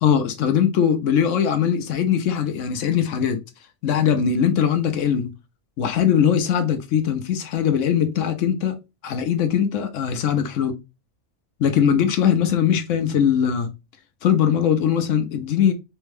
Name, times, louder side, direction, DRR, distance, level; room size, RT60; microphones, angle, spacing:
voice 1, 0.0-3.4 3.8-5.3 5.8-8.8 9.0-10.7 11.6-13.7 14.2-15.7, left 8 dB, 70° left, 0.9 m, -20 dB
3.4 x 2.2 x 3.2 m
omnidirectional pair, 1.4 m